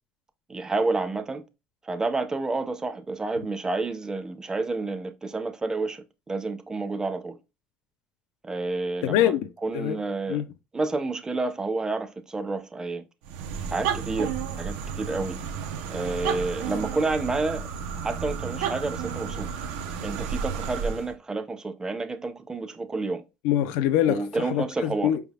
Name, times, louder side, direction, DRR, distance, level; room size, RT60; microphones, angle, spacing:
voice 1, 0.5-1.4 1.8-7.4 8.4-9.2 9.6-10.4 10.7-13.0 13.7-15.4 15.9-17.6 18.0-19.5 20.0-23.2 24.1-25.1, right 3 dB, 15° right, 0.5 m, -29 dB
voice 2, 9.0-10.0 10.3-10.4 23.4-25.2, left 11 dB, 80° left, 0.4 m, -24 dB
sound 1, 13.2-21.1, right 7 dB, 85° right, 0.6 m, -32 dB
4.8 x 3.4 x 2.3 m
cardioid pair, 120°, 4 cm